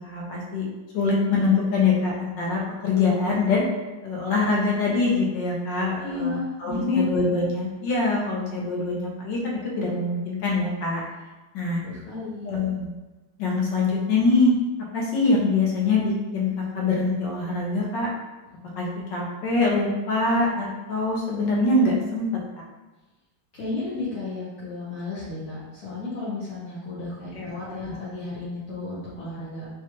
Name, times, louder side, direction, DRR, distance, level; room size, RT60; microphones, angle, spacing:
voice 1, 0.0-0.7 0.9-3.6 4.0-6.3 6.6-11.0 11.5-11.8 12.5-12.8 13.4-14.5 14.9-18.1 18.8-22.3 27.3-28.0, left 3 dB, 75° left, -3 dB, 1.5 m, -24 dB
voice 2, 6.0-7.0 11.8-12.5 23.5-29.7, left 3 dB, 60° left, -9 dB, 1.3 m, -32 dB
4.6 x 2.3 x 2.9 m, 1.1 s
omnidirectional pair, 2.0 m